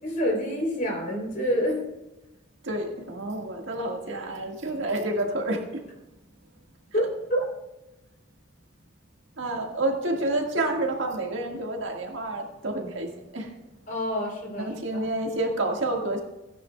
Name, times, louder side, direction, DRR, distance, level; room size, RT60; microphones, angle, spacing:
voice 1, 0.0-1.9 6.9-7.4 13.9-14.7, equal, 45° left, -1 dB, 3.3 m, -27 dB
voice 2, 2.6-5.8 9.4-13.5 14.5-16.2, right 2 dB, 75° right, 2 dB, 1.7 m, -29 dB
16.0 x 9.6 x 2.3 m, 0.98 s
head